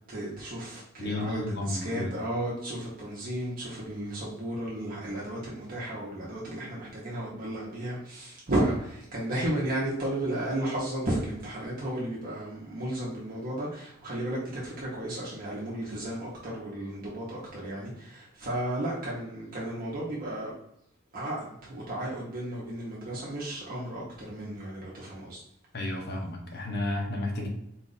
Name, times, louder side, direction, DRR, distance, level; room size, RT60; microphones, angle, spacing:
voice 1, 0.1-20.5 21.1-25.4, right 1 dB, 45° right, -5 dB, 0.9 m, -33 dB
voice 2, 1.0-2.1 25.7-27.5, left 1 dB, 55° left, 1 dB, 0.8 m, -32 dB
4.1 x 2.5 x 3.9 m, 0.78 s
head